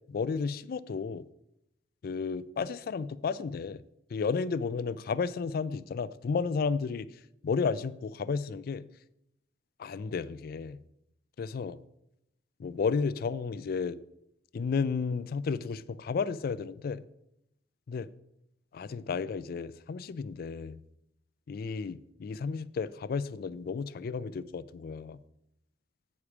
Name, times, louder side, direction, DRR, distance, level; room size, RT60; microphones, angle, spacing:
voice 1, 0.1-1.3 2.0-3.8 4.1-7.1 7.4-8.8 9.8-10.8 11.4-11.8 12.6-14.0 14.5-17.0 17.9-18.1 18.7-20.8 21.5-25.2, left 5 dB, 55° left, 0.3 m, -32 dB
8.4 x 4.9 x 6.0 m
head